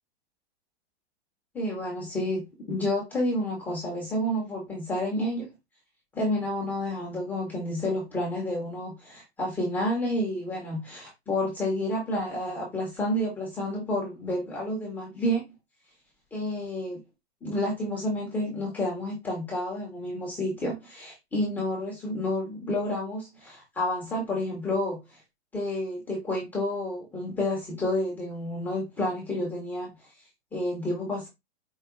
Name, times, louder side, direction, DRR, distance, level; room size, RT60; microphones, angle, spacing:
voice 1, 1.5-5.5 6.1-15.5 16.3-17.0 17.4-25.0 25.5-29.9 30.5-31.3, left 1 dB, 5° left, 0.5 m, -30 dB
4.5 x 2.1 x 3.6 m
hypercardioid pair, 165°, 35 cm